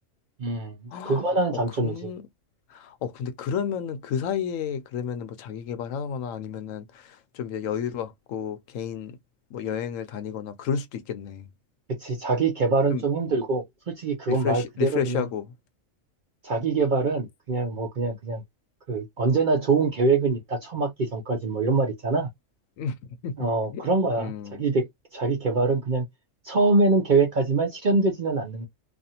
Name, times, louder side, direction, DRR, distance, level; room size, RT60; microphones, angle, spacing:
voice 1, 0.4-2.1 12.0-15.3 16.4-18.4 18.9-22.3 23.4-26.0 26.4-28.7, right 3 dB, 50° right, 0.6 m, -24 dB
voice 2, 0.9-1.2 1.8-2.2 2.7-9.2 9.5-11.5 12.9-13.0 14.3-15.5 22.8-23.8 24.2-24.6, left 7 dB, 75° left, 1.0 m, -31 dB
2.5 x 2.5 x 2.7 m
omnidirectional pair, 1.4 m